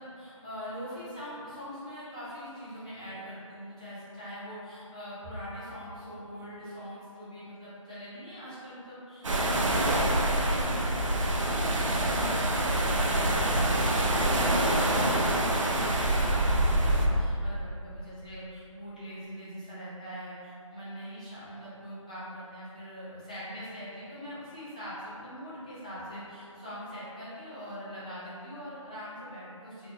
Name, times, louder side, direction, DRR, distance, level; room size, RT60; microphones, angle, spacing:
voice 1, 0.0-29.9, equal, 15° left, -14 dB, 0.4 m, -42 dB
sound 1, 9.2-17.1, right 1 dB, 65° right, 0.4 m, -26 dB
2.3 x 2.1 x 2.9 m, 2.5 s
figure-of-eight pair, 165°, 17 cm